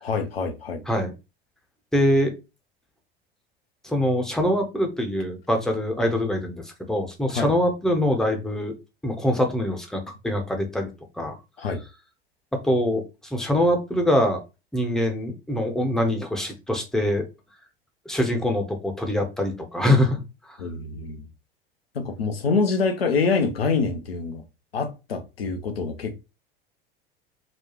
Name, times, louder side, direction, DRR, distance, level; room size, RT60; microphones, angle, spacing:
voice 1, 0.0-0.8 7.3-7.5 11.6-11.8 20.6-21.3 21.9-24.4 24.7-26.2, left 4 dB, 80° left, 0.7 m, -25 dB
voice 2, 1.9-2.3 3.8-8.7 9.0-10.9 11.2-11.3 12.5-14.4 14.7-17.2 18.1-20.2 20.5-20.6, left 1 dB, ahead, 0.7 m, -24 dB
4.0 x 2.3 x 2.8 m
figure-of-eight pair, 75°, 30 cm